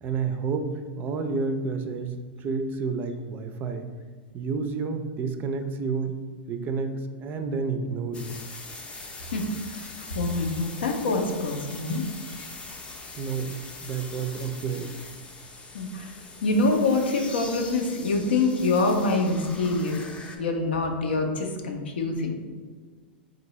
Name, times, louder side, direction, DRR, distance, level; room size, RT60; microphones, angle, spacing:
voice 1, 0.0-3.9 4.3-6.2 6.5-8.4 13.2-14.9, right 4 dB, 35° right, 7 dB, 0.4 m, -30 dB
sound 1, 8.1-20.4, left 3 dB, 20° left, 0.5 m, -42 dB
voice 2, 9.2-9.9 10.1-12.1 15.7-16.1 16.4-20.0 20.4-22.4, left 3 dB, 85° left, 3 dB, 0.6 m, -25 dB
3.9 x 2.6 x 3.0 m, 1.4 s
hypercardioid pair, 110°, 6 cm